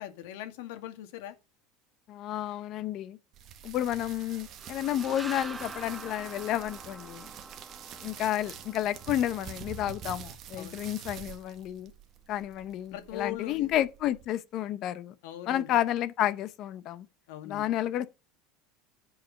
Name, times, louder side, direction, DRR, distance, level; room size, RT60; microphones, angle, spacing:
voice 1, 0.0-1.4 10.6-10.8 12.9-13.7 15.2-15.7 17.3-17.7, left 12 dB, 75° left, 1.9 m, -40 dB
voice 2, 2.1-3.2 3.6-7.3 8.0-11.9 12.3-15.1 15.5-17.1 17.4-18.1, left 12 dB, 40° left, 0.7 m, -31 dB
sound 1, 3.3-14.3, right 8 dB, 35° right, 1.4 m, -46 dB
sound 2, 4.6-10.2, right 3 dB, 5° right, 0.7 m, -46 dB
10.5 x 4.8 x 6.4 m
supercardioid pair, 160°, 0 cm